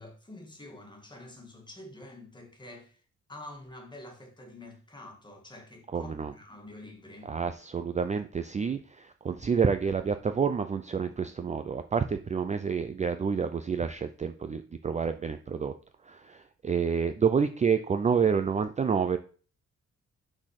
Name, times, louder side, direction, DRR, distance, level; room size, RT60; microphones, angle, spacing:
voice 1, 0.0-3.0 3.3-7.4, left 1 dB, 15° left, 2.0 m, -47 dB
voice 2, 5.9-6.3 7.3-15.7 16.1-19.2, right 6 dB, 25° right, 0.5 m, -28 dB
6.2 x 4.2 x 6.4 m
cardioid pair, 110°, 29 cm